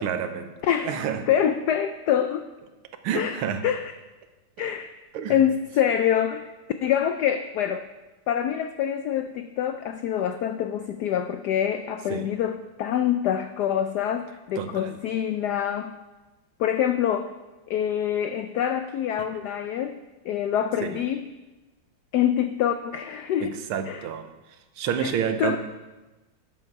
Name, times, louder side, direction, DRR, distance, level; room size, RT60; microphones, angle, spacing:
voice 1, 0.0-0.5 0.8-1.3 3.0-3.6 4.6-4.7 5.1-5.4 12.1-12.3 14.5-15.0 20.8-21.0 23.4-24.3 24.8-25.6, right 8 dB, 90° right, 8 dB, 1.7 m, -29 dB
voice 2, 0.6-0.9 1.3-2.5 3.1-3.9 4.6-4.9 5.3-6.5 6.8-7.8 8.3-16.0 16.6-17.3 17.7-20.0 20.2-21.3 22.1-23.5 23.9-24.0 25.0-25.1 25.4-25.6, left 9 dB, 85° left, 9 dB, 0.8 m, -25 dB
12.0 x 7.9 x 4.7 m, 1.1 s
omnidirectional pair, 2.3 m